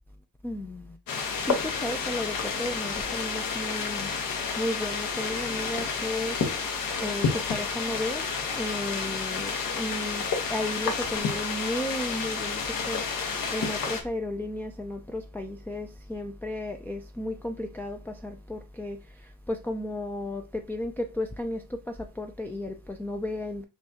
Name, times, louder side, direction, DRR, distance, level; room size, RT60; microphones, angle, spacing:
voice 1, 0.4-1.0 1.4-4.1 4.6-6.4 7.0-8.3 8.5-10.2 10.5-13.0 13.5-23.6, left 1 dB, 5° left, 0.3 m, -34 dB
sound 1, 1.1-14.0, left 5 dB, 70° left, 1.1 m, -30 dB
6.1 x 2.3 x 2.8 m
cardioid pair, 110°, 35 cm